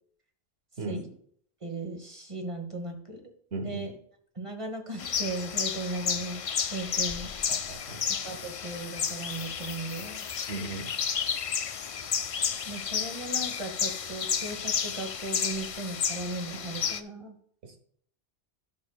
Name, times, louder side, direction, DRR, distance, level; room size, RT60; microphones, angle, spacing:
voice 1, 1.6-3.2 3.6-3.9 4.4-6.4 6.7-7.3 8.2-10.3 12.6-17.3, right 2 dB, 30° right, 4 dB, 1.3 m, -37 dB
voice 2, 3.5-3.9 7.5-8.0 10.5-10.9 17.6-17.8, right 3 dB, 85° right, 4 dB, 1.5 m, -36 dB
sound 1, 5.0-17.0, left 7 dB, 60° left, 0.3 m, -32 dB
13.0 x 6.3 x 2.4 m, 0.63 s
omnidirectional pair, 1.1 m